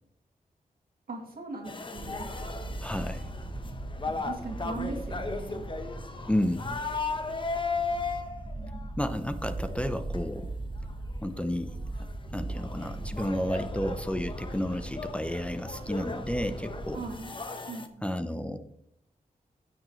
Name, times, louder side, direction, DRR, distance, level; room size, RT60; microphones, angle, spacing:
voice 1, 1.1-2.3 4.1-5.7 8.6-8.9 16.9-17.3 17.7-18.1, right 3 dB, 80° right, 0 dB, 2.3 m, -40 dB
sound 1, 1.6-8.9 9.6-9.8 10.1-10.2 10.9-11.0 11.4-11.5 11.7-17.9, left 4 dB, 35° left, 0.9 m, -37 dB
sound 2, 2.0-17.2, right 2 dB, 30° right, 1.3 m, -39 dB
voice 2, 2.8-3.3 6.3-6.8 9.0-10.5 11.2-11.8 12.3-17.0 18.0-18.6, left 1 dB, 10° left, 8 dB, 0.6 m, -31 dB
16.0 x 6.6 x 3.1 m, 0.77 s
wide cardioid pair, 110°, 15 cm